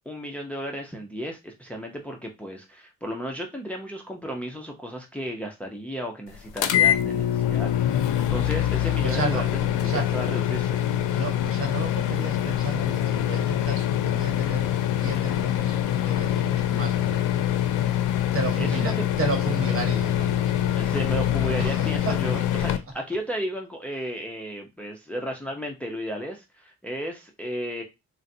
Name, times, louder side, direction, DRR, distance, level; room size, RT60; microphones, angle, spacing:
voice 1, 0.1-10.8 18.0-18.2 18.6-19.0 20.8-27.8, equal, 5° left, 0.6 m, -34 dB
sound 1, 6.6-22.8, left 11 dB, 80° left, 0.5 m, -24 dB
voice 2, 9.0-9.5 9.8-10.1 11.1-17.5 18.3-20.5 21.6-22.2 22.6-22.7, right 3 dB, 45° right, 1.2 m, -33 dB
3.8 x 2.2 x 2.6 m
cardioid pair, 90°, 30 cm